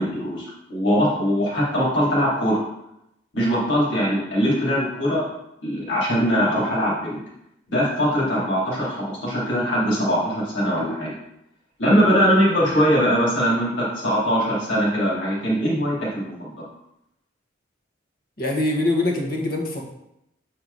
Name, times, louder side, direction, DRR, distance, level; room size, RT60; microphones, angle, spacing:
voice 1, 0.0-2.6 3.3-5.2 5.6-7.2 7.7-11.1 11.8-16.5, equal, 80° left, -6 dB, 3.0 m, -21 dB
voice 2, 18.4-19.8, left 2 dB, 50° left, 0 dB, 1.3 m, -23 dB
8.0 x 4.7 x 4.0 m, 0.83 s
head